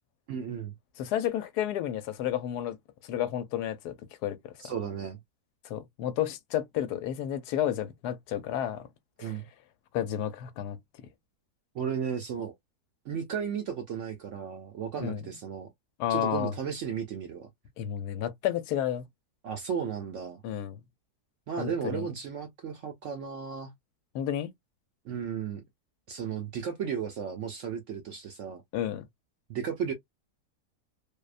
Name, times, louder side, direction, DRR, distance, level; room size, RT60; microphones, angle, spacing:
voice 1, 0.3-0.8 4.6-5.2 9.2-9.5 11.7-12.5 13.1-15.7 16.1-17.5 19.4-20.4 21.5-23.7 25.0-25.6 26.1-28.6 29.5-29.9, right 7 dB, 65° right, 0.7 m, -34 dB
voice 2, 1.0-2.8 3.1-3.9 4.2-4.5 5.7-8.9 9.2-9.3 9.9-10.8 15.0-15.2 16.0-16.5 17.8-19.0 20.4-20.8 21.6-22.1 24.1-24.5 28.7-29.1, left 11 dB, 80° left, 1.1 m, -31 dB
2.7 x 2.1 x 2.4 m
omnidirectional pair, 1.7 m